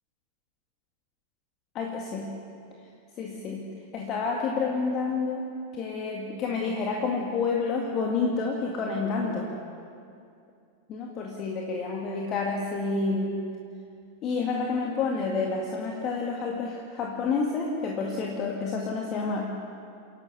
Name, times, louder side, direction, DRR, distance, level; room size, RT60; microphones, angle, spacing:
voice 1, 1.7-2.3 3.2-3.7 3.9-9.5 10.9-13.5 14.2-19.5, left 4 dB, 35° left, 0 dB, 2.1 m, -29 dB
29.0 x 11.5 x 8.2 m, 2.4 s
figure-of-eight pair, 90°, 0 cm